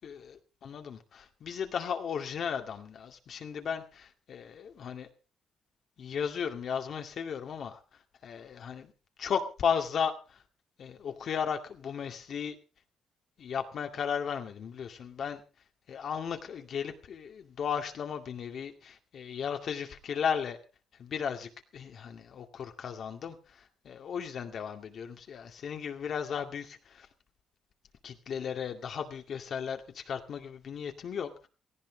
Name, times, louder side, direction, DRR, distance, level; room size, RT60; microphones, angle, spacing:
voice 1, 0.0-5.1 6.0-7.8 8.2-8.9 9.2-10.1 10.8-12.6 13.4-15.4 15.9-20.6 21.0-23.4 23.8-27.1 28.0-31.5, left 7 dB, 60° left, 5 dB, 2.2 m, -35 dB
18.0 x 15.0 x 4.0 m, 0.34 s
cardioid pair, 90°, 0 cm